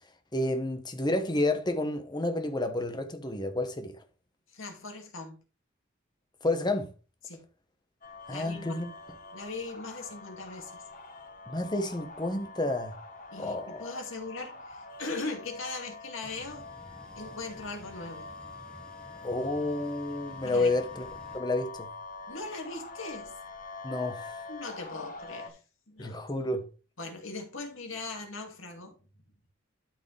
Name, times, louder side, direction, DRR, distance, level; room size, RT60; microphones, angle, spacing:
voice 1, 0.3-4.0 6.4-6.9 8.3-8.9 11.5-13.0 13.4-13.9 19.2-21.1 21.3-21.9 23.8-24.3 26.0-26.7, left 2 dB, 20° left, 1.2 m, -30 dB
voice 2, 4.5-5.4 7.2-7.5 8.3-8.9 9.3-10.8 13.3-16.7 17.2-18.3 20.4-20.7 22.3-23.4 24.5-25.6 25.9-26.2 27.0-29.0, left 3 dB, 70° left, 2.4 m, -39 dB
sound 1, 8.0-25.5, left 3 dB, 40° left, 1.3 m, -45 dB
sound 2, 16.2-21.4, equal, 5° left, 1.5 m, -52 dB
12.5 x 5.0 x 3.3 m
head